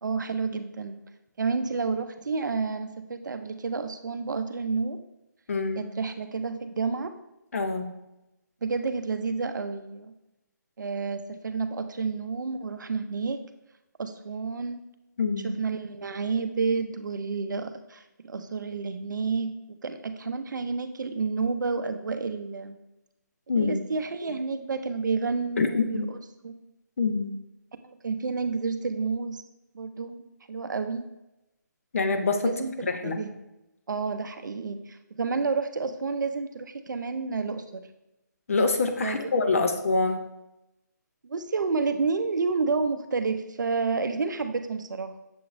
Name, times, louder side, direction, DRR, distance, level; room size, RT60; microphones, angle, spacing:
voice 1, 0.0-1.0 1.4-5.0 5.8-7.1 8.6-10.1 10.8-13.4 14.0-14.8 15.4-19.5 19.8-22.8 23.5-26.2 26.4-26.6 27.8-29.4 29.7-31.1 32.4-33.3 33.9-37.9 39.0-39.2 39.6-39.7 41.2-45.2, right 4 dB, 75° right, 9 dB, 0.5 m, -30 dB
voice 2, 5.5-5.9 7.5-7.9 15.2-15.5 23.5-23.8 25.6-26.1 27.0-27.3 31.9-32.6 32.9-33.2 38.5-40.2, left 4 dB, 50° left, 7 dB, 0.5 m, -25 dB
6.9 x 3.0 x 2.5 m, 0.92 s
hypercardioid pair, 165°, 10 cm